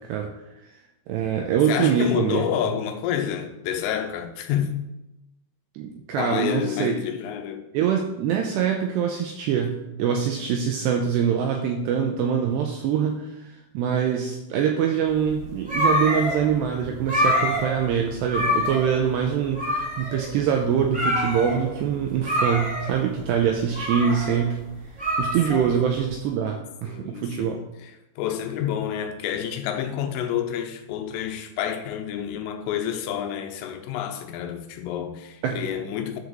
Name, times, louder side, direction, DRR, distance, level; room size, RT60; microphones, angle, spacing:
voice 1, 1.1-2.5 5.8-6.9 7.7-13.5 13.7-24.6 25.0-27.6 35.4-35.6, right 8 dB, 85° right, 2.5 m, -24 dB
voice 2, 1.7-4.8 6.2-7.7 25.5-25.7 26.9-27.9 28.2-36.2, left 9 dB, 90° left, 3.5 m, -29 dB
sound 1, 15.1-26.1, left 1 dB, 5° right, 1.0 m, -26 dB
10.5 x 5.0 x 6.7 m
omnidirectional pair, 5.7 m